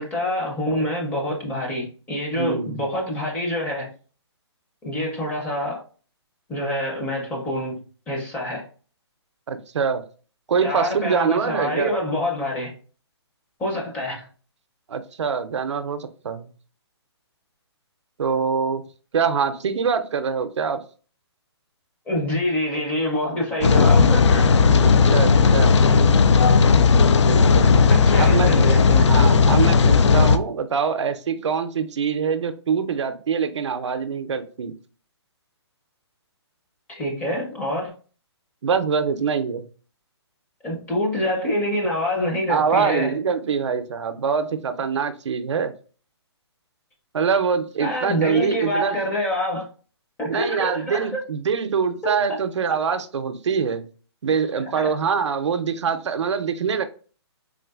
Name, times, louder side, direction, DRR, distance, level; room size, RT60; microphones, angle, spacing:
voice 1, 0.0-3.9 4.8-5.8 6.5-7.8 8.1-8.6 10.6-12.7 13.6-14.3 22.1-24.6 27.9-29.1 36.9-37.9 40.6-43.1 47.8-49.7 50.2-51.2 52.0-52.2 54.6-54.9, left 1 dB, 10° left, 0.5 m, -26 dB
voice 2, 2.3-2.8 9.5-10.0 10.5-11.9 14.9-16.5 18.2-18.8 19.1-20.8 24.8-25.8 27.2-27.8 28.2-28.6 29.1-34.7 38.6-39.6 42.5-45.7 47.1-49.0 50.3-53.9 54.2-56.8, right 6 dB, 85° right, 0.5 m, -24 dB
Rain, 23.6-30.4, left 5 dB, 85° left, 0.4 m, -15 dB
3.7 x 2.5 x 2.3 m
hypercardioid pair, 165°, 15 cm